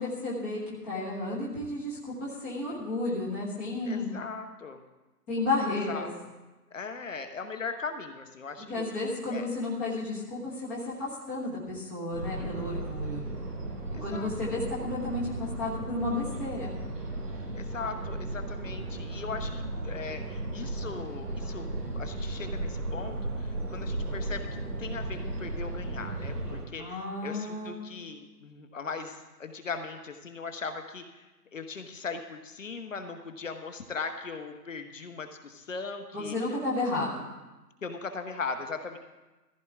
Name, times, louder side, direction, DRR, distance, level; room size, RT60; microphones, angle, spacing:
voice 1, 0.0-4.1 5.3-6.1 8.7-13.2 14.0-16.8 26.8-27.8 36.1-37.3, left 2 dB, 5° left, -7 dB, 1.2 m, -32 dB
voice 2, 3.8-4.8 5.9-6.1 6.7-8.8 9.3-9.5 12.4-12.9 13.9-14.3 17.5-31.2 31.5-36.4 37.8-39.0, left 4 dB, 50° left, 7 dB, 1.1 m, -39 dB
sound 1, 12.1-26.7, right 2 dB, 70° right, 5.7 m, -35 dB
15.5 x 14.5 x 3.5 m, 1.1 s
hypercardioid pair, 170°, 50 cm